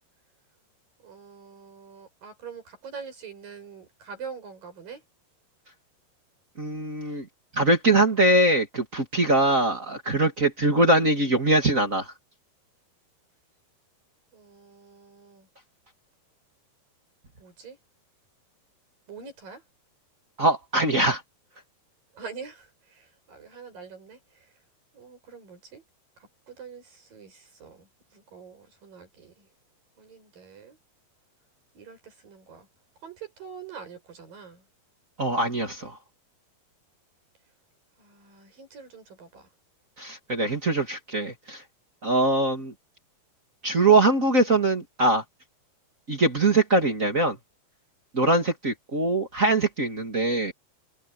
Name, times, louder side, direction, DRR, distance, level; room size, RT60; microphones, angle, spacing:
voice 1, 1.0-5.0 14.3-15.5 17.4-17.8 19.1-19.6 22.2-22.7 23.0-24.2 24.9-25.8 26.5-27.9 28.1-29.5 30.0-30.8 31.8-32.7 33.0-34.6 38.0-39.5, right 6 dB, 50° right, 9.0 m, -44 dB
voice 2, 6.6-7.2 7.5-12.1 20.4-21.2 35.2-35.9 40.0-41.6 42.0-42.7 43.6-45.2 46.1-47.3 48.1-50.5, right 2 dB, 30° right, 1.6 m, -22 dB
omnidirectional pair, 5.2 m